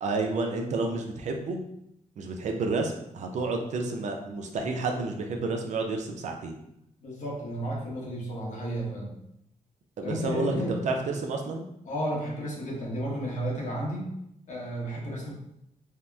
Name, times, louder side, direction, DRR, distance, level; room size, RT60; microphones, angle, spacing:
voice 1, 0.0-1.6 2.2-6.6 10.0-11.6, right 3 dB, 65° right, 3 dB, 0.4 m, -30 dB
voice 2, 7.0-9.1 10.0-10.8 11.9-14.1 14.5-15.3, equal, 70° left, -3 dB, 0.9 m, -33 dB
2.8 x 2.0 x 3.3 m, 0.79 s
wide cardioid pair, 135°, 13 cm